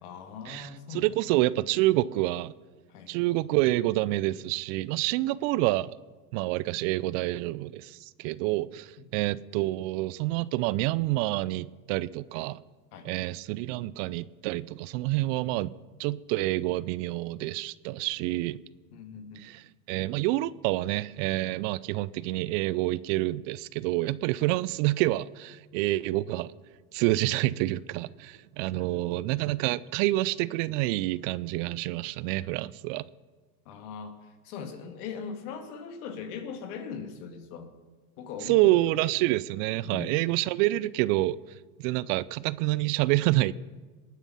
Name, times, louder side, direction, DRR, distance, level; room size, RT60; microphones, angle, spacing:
voice 1, 0.0-1.1 2.9-3.1 9.0-9.1 12.9-13.1 18.9-19.5 28.7-29.0 33.7-37.7 38.2-38.8 39.8-40.2, left 6 dB, 70° left, 2.3 m, -40 dB
voice 2, 0.9-2.5 3.1-6.0 6.3-12.6 13.0-15.7 16.0-18.6 19.4-26.5 26.9-33.1 38.5-41.4 41.8-43.5, right 17 dB, 55° right, 0.5 m, -27 dB
20.0 x 9.1 x 5.7 m
supercardioid pair, 110°, 46 cm